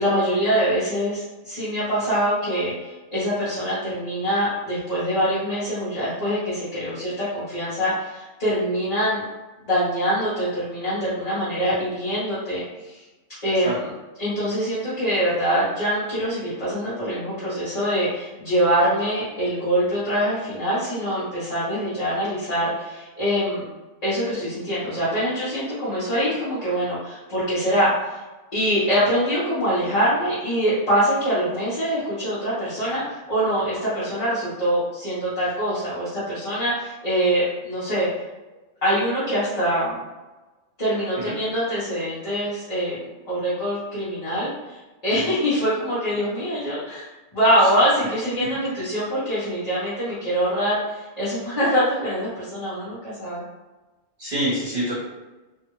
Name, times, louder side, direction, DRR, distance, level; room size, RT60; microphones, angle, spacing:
voice 1, 0.0-9.2 9.6-13.0 13.4-13.9 14.2-23.6 24.0-28.2 28.5-38.1 38.8-40.0 40.8-43.0 43.2-53.4, equal, 35° left, -12 dB, 1.0 m, -24 dB
voice 2, 54.2-54.9, right 1 dB, 45° right, -10 dB, 1.3 m, -27 dB
2.7 x 2.4 x 3.0 m, 1.2 s
omnidirectional pair, 1.3 m